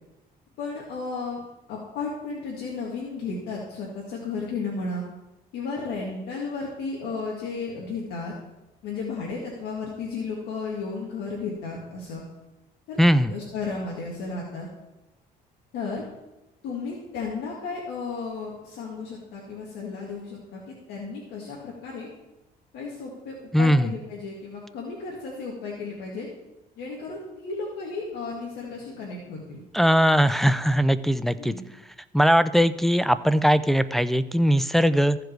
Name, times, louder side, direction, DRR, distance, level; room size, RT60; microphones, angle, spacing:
voice 1, 0.6-1.4 1.7-5.0 5.5-8.4 8.8-12.2 12.9-13.0 13.3-14.7 15.7-16.0 16.6-22.1 22.7-26.3 26.8-29.6 31.4-31.6, left 4 dB, 80° left, -3 dB, 1.9 m, -34 dB
voice 2, 13.0-13.3 23.5-23.9 29.7-31.5 32.1-35.2, equal, ahead, 12 dB, 0.3 m, -20 dB
14.5 x 5.0 x 4.6 m, 0.99 s
cardioid pair, 110°, 17 cm